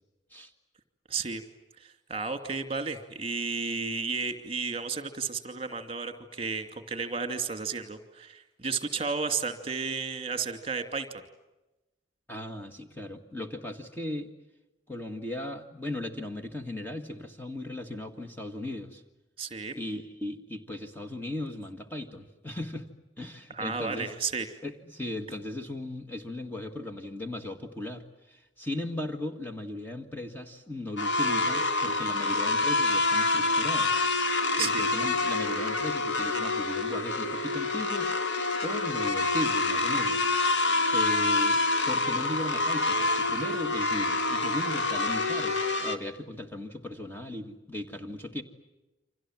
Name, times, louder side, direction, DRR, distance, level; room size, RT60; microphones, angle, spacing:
voice 1, 1.1-1.4 1.8-11.2 19.4-19.7 23.5-24.5 34.6-34.8, right 5 dB, 30° right, 8 dB, 2.7 m, -33 dB
voice 2, 12.3-14.3 14.9-19.0 19.8-22.9 23.2-24.1 24.6-34.0 34.3-38.1 38.6-40.3 40.9-48.4, left 1 dB, 10° left, 4 dB, 1.8 m, -37 dB
sound 1, 31.0-46.0, left 3 dB, 70° left, 2.2 m, -27 dB
29.5 x 26.0 x 7.5 m, 1.0 s
head